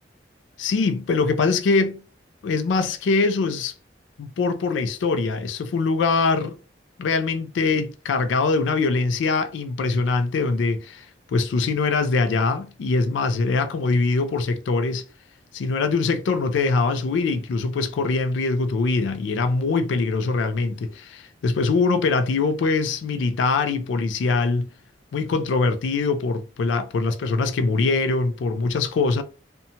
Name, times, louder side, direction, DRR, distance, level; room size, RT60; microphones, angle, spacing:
voice 1, 0.6-2.0 2.4-3.7 4.2-6.6 7.0-15.0 15.5-24.7 25.1-29.2, left 4 dB, 90° left, 0.3 m, -23 dB
2.8 x 2.2 x 2.7 m
head